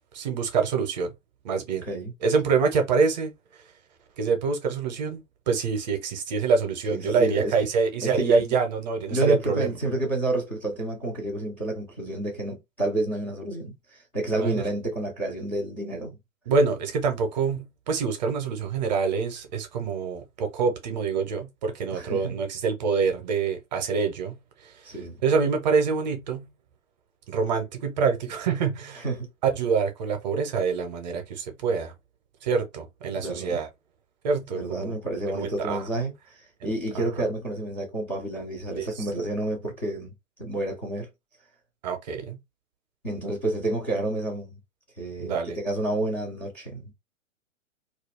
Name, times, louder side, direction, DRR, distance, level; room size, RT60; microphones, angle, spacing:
voice 1, 0.1-1.1 1.4-1.8 2.2-3.3 4.2-9.8 14.3-14.6 16.5-24.3 24.6-24.7 25.2-26.5 27.3-29.0 29.4-31.9 32.4-33.7 34.2-34.9 35.3-35.8 36.6-37.0 38.7-39.0 41.8-42.4 45.2-45.6, right 5 dB, 35° right, 0.7 m, -26 dB
voice 2, 1.7-2.1 6.9-7.5 8.0-8.5 9.1-16.2 21.9-22.4 24.8-25.2 29.0-29.3 33.1-33.6 34.5-40.1 40.4-41.1 43.0-44.6 45.0-46.9, right 2 dB, 10° left, 0.4 m, -30 dB
2.4 x 2.2 x 3.5 m
figure-of-eight pair, 115°, 40 cm